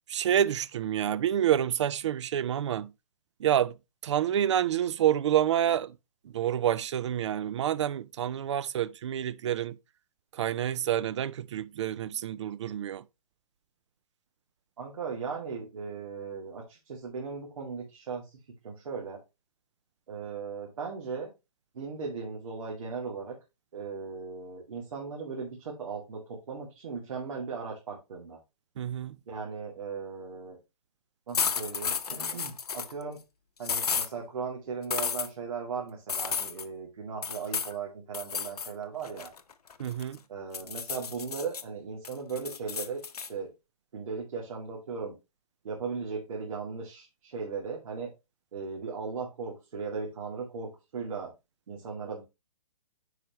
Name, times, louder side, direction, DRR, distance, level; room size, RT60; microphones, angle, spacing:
voice 1, 0.1-2.9 3.4-3.7 4.0-5.9 6.2-9.8 10.3-13.0 28.8-29.2 39.8-40.2, right 10 dB, 50° right, 0.5 m, -28 dB
voice 2, 14.8-19.2 20.1-21.3 21.7-23.4 23.7-28.4 29.3-30.6 31.3-33.2 33.6-39.3 40.3-43.5 43.9-45.2 45.6-48.1 48.5-51.3 51.7-52.2, right 5 dB, 65° right, 2.4 m, -37 dB
sound 1, 31.3-32.9 33.6-34.1 34.9-35.3 36.1-36.7 37.2-37.7 38.1-38.7 39.0-40.2 40.5-41.6 42.0-43.3, left 6 dB, 80° left, 0.8 m, -32 dB
9.7 x 4.8 x 3.0 m
hypercardioid pair, 145°, 19 cm